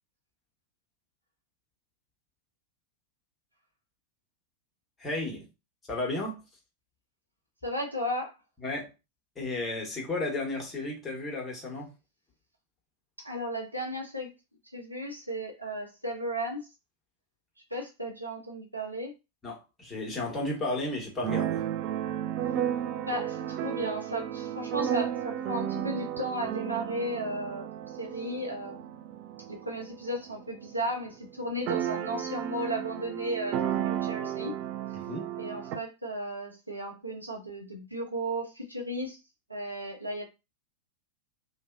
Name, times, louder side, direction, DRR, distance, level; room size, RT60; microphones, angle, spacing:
voice 1, 5.0-5.5 5.9-6.4 8.6-8.9 9.3-11.9 19.4-21.6 34.9-35.3, left 2 dB, 15° left, 1.1 m, -33 dB
voice 2, 7.6-8.3 13.2-14.3 14.7-16.7 17.7-19.1 23.1-29.0 29.5-34.6 35.4-39.2 39.5-40.2, equal, 85° right, 0.7 m, -35 dB
Keyboard (musical), 21.2-30.8 31.0-31.1 31.3-35.8, right 10 dB, 40° right, 0.3 m, -33 dB
2.6 x 2.1 x 2.3 m
figure-of-eight pair, 90°, 0 cm